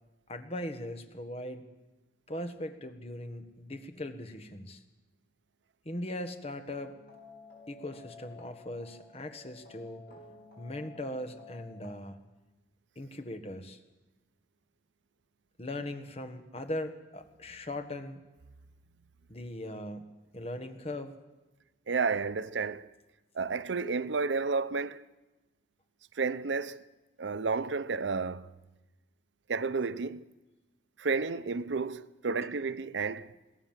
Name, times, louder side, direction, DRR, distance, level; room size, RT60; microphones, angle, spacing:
voice 1, 0.3-1.7 2.3-4.8 5.8-6.9 7.7-10.0 10.6-12.2 12.9-13.8 15.6-18.2 19.3-21.1 32.3-32.5, left 1 dB, 35° left, 1.6 m, -39 dB
sound 1, 6.7-11.9, left 3 dB, 55° left, 7.2 m, -52 dB
voice 2, 21.9-22.9 23.3-25.0 26.2-26.9 27.2-28.5 29.5-30.2 31.0-33.3, right 4 dB, 90° right, 0.7 m, -31 dB
22.5 x 16.5 x 7.4 m
head